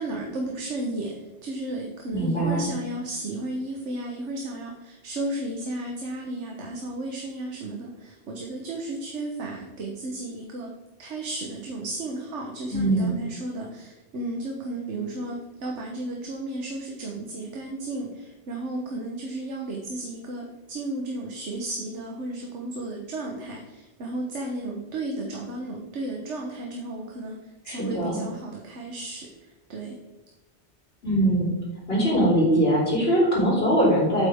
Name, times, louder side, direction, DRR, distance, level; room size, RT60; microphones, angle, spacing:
voice 1, 0.0-10.7 11.0-29.9, right 2 dB, 85° right, 0 dB, 1.4 m, -33 dB
voice 2, 2.1-2.7 12.7-13.1 27.7-28.2 31.0-31.5 31.9-34.3, right 1 dB, 55° left, -5 dB, 3.8 m, -22 dB
8.4 x 8.1 x 3.6 m, 1.1 s
omnidirectional pair, 1.2 m